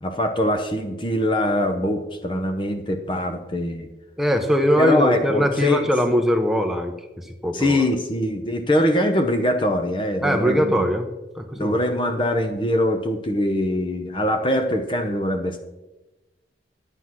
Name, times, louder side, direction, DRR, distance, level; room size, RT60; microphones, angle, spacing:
voice 1, 0.0-3.9 4.8-5.9 7.5-10.8 11.5-15.6, left 1 dB, 25° left, 6 dB, 0.8 m, -23 dB
voice 2, 4.2-7.8 10.2-11.1 11.4-11.8, equal, ahead, 4 dB, 1.0 m, -21 dB
9.8 x 9.6 x 6.0 m, 1.1 s
head